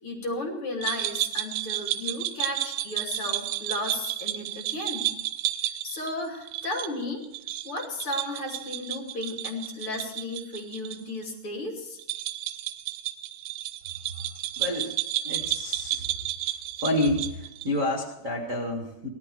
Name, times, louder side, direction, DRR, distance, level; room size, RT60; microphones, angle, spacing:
voice 1, 0.0-5.1 5.8-7.2 7.6-12.0, left 2 dB, 35° left, -1 dB, 3.1 m, -34 dB
sound 1, 0.8-11.0 11.2-11.3 12.0-17.8, right 14 dB, 90° right, 2.8 m, -32 dB
voice 2, 14.6-16.1 16.8-19.1, left 1 dB, 55° right, 1 dB, 0.8 m, -29 dB
17.5 x 13.5 x 4.8 m, 0.88 s
omnidirectional pair, 4.6 m